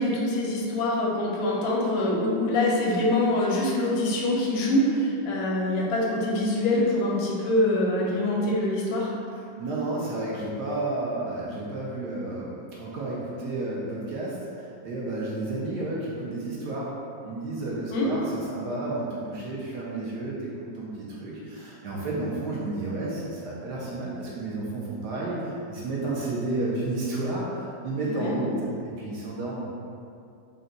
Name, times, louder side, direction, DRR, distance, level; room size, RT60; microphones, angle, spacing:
voice 1, 0.0-9.1 17.9-18.1 28.0-28.3, left 1 dB, 80° left, -3 dB, 1.4 m, -24 dB
voice 2, 9.6-16.9 17.2-28.7 29.0-29.8, right 2 dB, 70° right, -6 dB, 1.0 m, -31 dB
3.9 x 2.2 x 3.7 m, 2.5 s
omnidirectional pair, 2.1 m